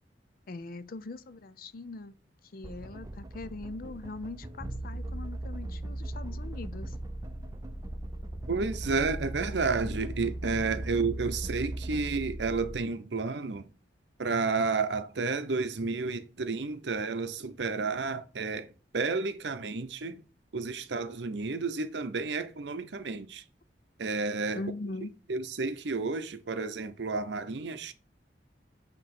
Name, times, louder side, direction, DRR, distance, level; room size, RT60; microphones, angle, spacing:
voice 1, 0.5-2.1 2.5-6.9 24.5-25.1, left 2 dB, 50° left, 0.5 m, -41 dB
forest drum sound, 2.6-12.0, right 1 dB, 20° right, 0.5 m, -45 dB
sound 1, 4.6-12.8, right 1 dB, 5° left, 1.7 m, -38 dB
voice 2, 8.5-13.7 14.2-18.7 18.9-20.2 20.5-23.4 24.0-24.6 25.3-27.9, right 4 dB, 70° right, 0.7 m, -31 dB
7.5 x 3.0 x 5.8 m
head